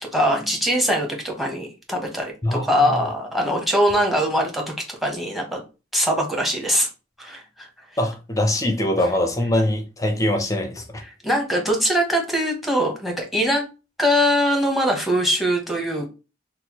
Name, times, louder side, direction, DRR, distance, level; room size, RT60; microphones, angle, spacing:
voice 1, 0.0-5.6 5.9-6.9 7.2-7.7 11.2-13.6 14.0-16.1, equal, ahead, 0.9 m, -22 dB
voice 2, 2.4-2.9 8.0-11.0, left 1 dB, 20° left, 0.5 m, -23 dB
4.2 x 2.0 x 2.9 m
head